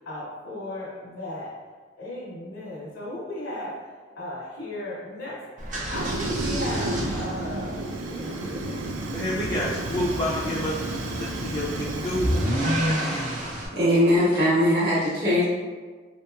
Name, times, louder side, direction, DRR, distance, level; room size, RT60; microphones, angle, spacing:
voice 1, 0.0-1.5 2.0-8.8 11.8-13.3, left 1 dB, 80° left, -7 dB, 0.8 m, -36 dB
sound 1, 5.6-13.7, equal, 40° right, 0.6 m, -31 dB
Fire, 5.9-12.6, right 2 dB, 80° right, 0.4 m, -32 dB
voice 2, 9.1-10.8 11.2-12.3, left 1 dB, 25° left, -7 dB, 0.3 m, -28 dB
voice 3, 13.7-15.4, left 1 dB, 60° right, -7 dB, 1.1 m, -20 dB
3.8 x 2.8 x 2.2 m, 1.4 s
head